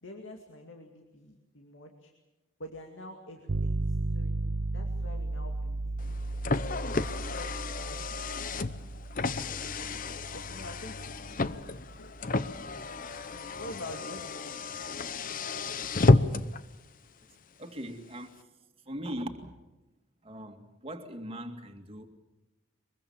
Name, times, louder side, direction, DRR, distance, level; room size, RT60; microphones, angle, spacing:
voice 1, 0.0-2.1 2.6-4.4 4.7-6.2 6.6-8.1 8.3-8.8 9.3-12.1 12.6-12.9 13.3-14.6, left 1 dB, 70° left, 2.4 m, -47 dB
sound 1, 3.5-13.4, right 2 dB, 65° right, 0.7 m, -35 dB
Car, 6.0-16.6, left 3 dB, 45° left, 0.8 m, -31 dB
voice 2, 17.6-18.4 18.9-19.5 20.2-22.1, equal, 30° right, 2.3 m, -40 dB
23.0 x 22.5 x 7.2 m
head